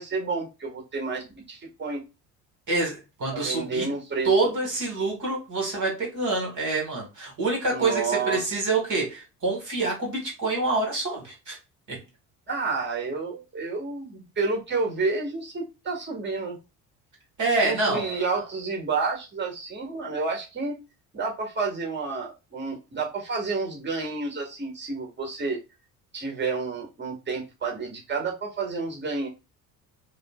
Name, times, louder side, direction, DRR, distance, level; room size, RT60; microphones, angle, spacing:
voice 1, 0.0-2.0 3.3-4.4 7.7-8.6 12.5-16.6 17.6-20.8 21.1-25.6 26.1-29.3, right 4 dB, 25° right, 1.7 m, -30 dB
voice 2, 2.7-3.9 4.2-11.6 11.9-12.0 17.4-18.0, right 3 dB, 40° right, 1.6 m, -26 dB
4.8 x 2.1 x 2.4 m
figure-of-eight pair, 55°, 44 cm